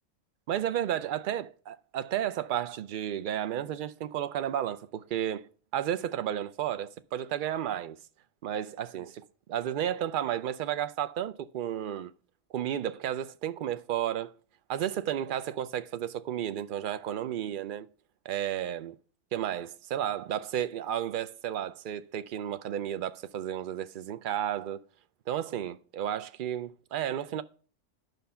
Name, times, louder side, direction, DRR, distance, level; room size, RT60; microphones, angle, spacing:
voice 1, 0.5-5.5 5.7-8.0 8.4-12.1 12.5-14.3 14.7-17.9 18.2-19.0 19.3-24.8 25.3-27.4, right 10 dB, 55° right, 0.6 m, -32 dB
11.0 x 5.2 x 5.7 m
omnidirectional pair, 1.3 m